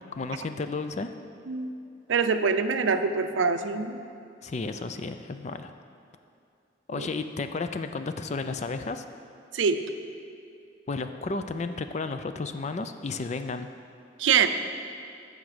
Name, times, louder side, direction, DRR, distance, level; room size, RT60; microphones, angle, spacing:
voice 1, 0.1-1.1 4.4-5.7 6.9-9.1 10.9-13.7, left 3 dB, 35° left, 9 dB, 0.4 m, -32 dB
voice 2, 2.1-4.0 6.9-7.1 9.5-9.8 14.2-14.5, right 5 dB, 80° right, 9 dB, 0.5 m, -24 dB
14.0 x 5.2 x 4.9 m, 2.5 s
head